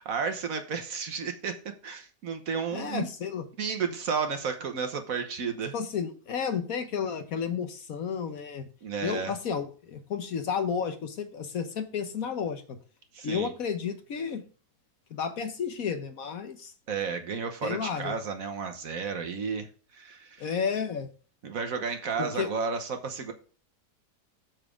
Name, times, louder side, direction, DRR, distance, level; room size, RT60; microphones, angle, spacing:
voice 1, 0.1-1.6 1.8-3.1 3.6-5.7 8.8-9.3 13.1-13.5 16.9-19.7 19.9-20.5 21.4-23.3, right 5 dB, 55° right, 6 dB, 1.4 m, -32 dB
voice 2, 2.7-3.4 5.7-8.6 9.0-12.8 13.2-14.4 15.1-16.7 17.6-18.2 20.4-21.1 22.2-22.5, left 6 dB, 60° left, 8 dB, 1.3 m, -32 dB
7.3 x 6.0 x 5.1 m, 0.39 s
omnidirectional pair, 1.8 m